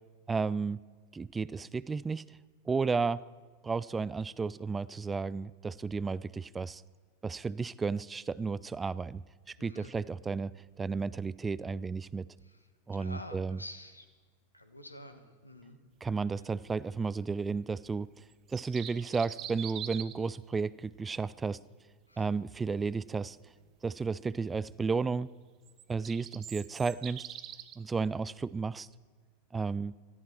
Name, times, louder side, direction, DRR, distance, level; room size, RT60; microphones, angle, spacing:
voice 1, 0.3-0.8 1.1-2.2 2.7-3.2 3.6-6.8 7.2-10.5 10.8-12.2 12.9-13.6 16.0-18.1 18.5-21.6 22.2-23.4 23.8-25.3 25.9-27.3 27.8-28.9 29.5-29.9, right 4 dB, 15° right, 19 dB, 0.3 m, -33 dB
voice 2, 9.6-9.9 12.9-14.1 14.5-15.8 22.1-22.2, left 1 dB, 85° left, 8 dB, 1.5 m, -48 dB
sound 1, 18.3-20.3 25.7-27.8, right 11 dB, 35° right, 0.8 m, -44 dB
18.0 x 14.0 x 4.4 m, 1.5 s
figure-of-eight pair, 90°, 0 cm